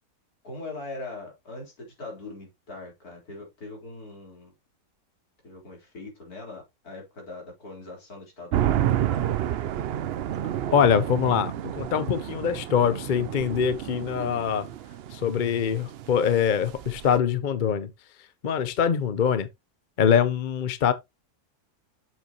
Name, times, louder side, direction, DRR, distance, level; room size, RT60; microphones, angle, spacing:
voice 1, 0.4-4.5 5.4-9.4, left 2 dB, 70° left, 4.5 m, -41 dB
sound 1, 8.5-17.2, right 11 dB, 90° right, 0.5 m, -30 dB
voice 2, 10.7-14.7 15.1-17.9 18.4-19.5 20.0-20.9, left 8 dB, 45° left, 0.7 m, -23 dB
7.6 x 7.0 x 2.9 m
omnidirectional pair, 1.6 m